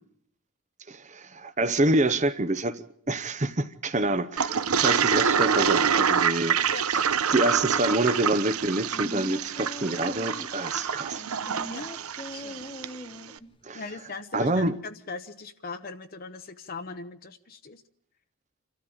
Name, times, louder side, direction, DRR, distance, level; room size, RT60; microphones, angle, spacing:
voice 1, 0.9-6.6 6.9-7.0 7.3-11.2 13.6-13.8 14.3-14.7, right 2 dB, 35° right, 0.8 m, -27 dB
Toilet flush, 4.4-13.0, right 7 dB, 85° right, 0.9 m, -26 dB
voice 2, 6.7-7.1 11.7-11.9 12.3-12.7 13.7-17.8, left 4 dB, 40° left, 0.9 m, -40 dB
sound 1, 8.6-10.6 11.2-13.6 13.9-14.0, equal, 25° left, 1.3 m, -41 dB
28.5 x 13.5 x 8.7 m
head